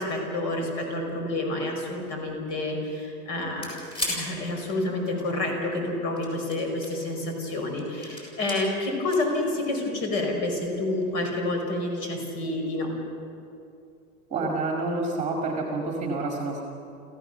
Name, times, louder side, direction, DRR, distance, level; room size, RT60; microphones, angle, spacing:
voice 1, 0.0-3.7 4.1-12.9, left 2 dB, 40° left, 2 dB, 5.3 m, -29 dB
sound 1, 3.4-5.2 6.0-7.1 7.5-8.6 9.1-9.9 11.0-11.1, equal, 10° left, 6.3 m, -35 dB
voice 2, 14.3-16.6, right 3 dB, 15° right, 0 dB, 2.1 m, -28 dB
27.5 x 15.5 x 6.8 m, 2.6 s
supercardioid pair, 160°, 44 cm